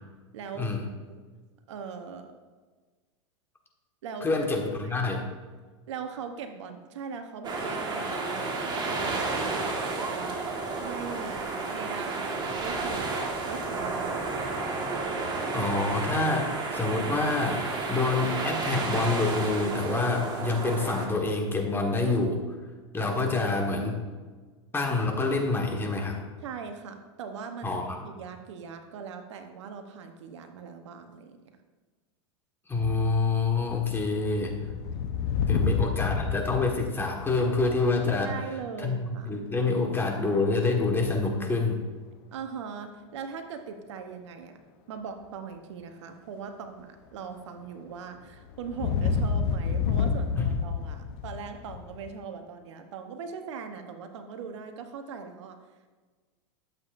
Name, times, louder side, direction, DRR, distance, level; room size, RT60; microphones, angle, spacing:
voice 1, 0.3-0.7 1.1-1.2 1.7-2.3 4.0-4.5 4.8-4.9 5.9-10.4 10.8-14.5 26.4-27.7 28.0-31.4 35.5-35.7 38.2-39.3 42.3-44.6 44.9-55.6, right 6 dB, 70° right, 7 dB, 1.0 m, -40 dB
voice 2, 4.2-5.3 15.5-22.4 22.9-24.0 24.7-26.2 27.6-28.0 32.7-34.5 35.5-38.3 38.8-41.8 50.4-50.5, left 3 dB, 15° left, 1 dB, 1.5 m, -27 dB
sound 1, 7.4-21.1, right 3 dB, 30° right, 1.5 m, -31 dB
sound 2, 32.8-38.1 40.8-41.4 48.5-52.1, left 6 dB, 55° left, 0.8 m, -30 dB
12.5 x 7.6 x 2.6 m, 1.4 s
hypercardioid pair, 105°, 15 cm